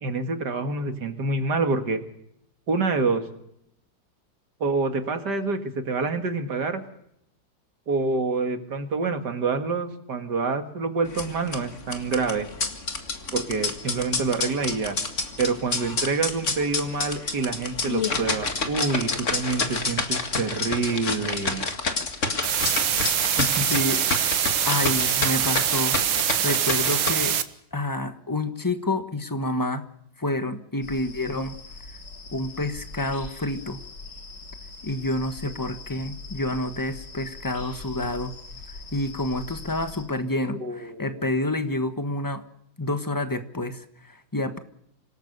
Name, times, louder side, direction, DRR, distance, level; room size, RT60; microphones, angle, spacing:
voice 1, 0.0-2.0 2.7-3.2 4.6-6.8 7.9-12.5 13.3-15.0 15.4-21.6 23.4-23.6 40.6-41.2, right 4 dB, 65° right, 7 dB, 2.6 m, -27 dB
sound 1, 11.1-27.1, left 3 dB, 40° left, 2.3 m, -29 dB
sound 2, 22.4-27.4, right 9 dB, 85° right, 1.9 m, -24 dB
voice 2, 23.7-24.0 24.6-26.0 26.4-27.3 27.7-29.8 30.2-31.6 32.3-33.8 34.8-38.3 38.9-42.4 42.8-44.6, left 1 dB, 15° left, 9 dB, 1.2 m, -28 dB
sound 3, 30.8-40.0, left 3 dB, 75° left, 5.7 m, -42 dB
26.5 x 17.5 x 6.8 m, 0.75 s
omnidirectional pair, 2.0 m